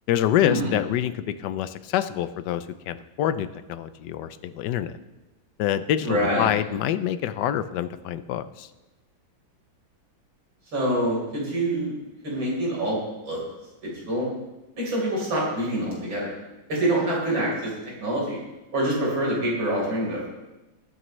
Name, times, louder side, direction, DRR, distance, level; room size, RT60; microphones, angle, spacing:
voice 1, 0.1-5.0 5.6-8.7, left 11 dB, 70° left, 12 dB, 1.1 m, -26 dB
voice 2, 6.0-6.5 10.7-11.9 12.2-13.0 13.2-13.4 13.8-14.3 14.8-16.3 16.7-17.7 18.0-18.4 18.7-20.2, right 1 dB, 70° right, -4 dB, 4.9 m, -25 dB
20.0 x 9.2 x 3.2 m, 1.1 s
omnidirectional pair, 2.2 m